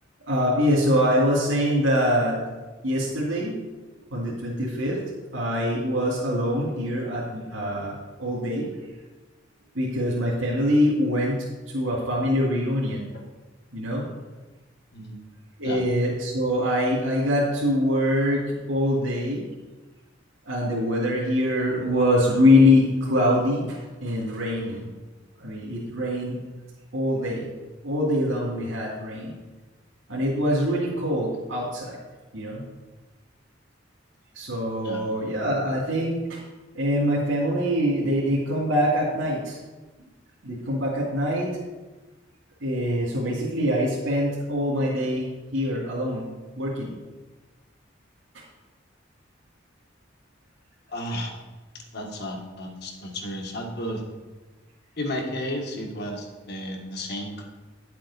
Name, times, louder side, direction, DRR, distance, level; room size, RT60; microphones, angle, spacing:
voice 1, 0.2-2.4 2.8-3.6 4.1-5.0 5.3-8.7 9.7-11.5 11.7-13.1 13.7-14.1 15.6-19.5 20.5-24.9 25.4-26.4 26.9-27.5 27.8-29.3 30.1-32.0 32.3-32.6 34.3-36.4 36.7-39.6 40.4-41.6 42.6-46.3 46.6-47.0 48.3-48.4, left 1 dB, 80° right, -6 dB, 2.6 m, -24 dB
voice 2, 50.9-51.3 51.9-54.0 55.0-57.4, left 1 dB, 55° left, 2 dB, 1.6 m, -33 dB
10.5 x 7.7 x 4.2 m, 1.2 s
head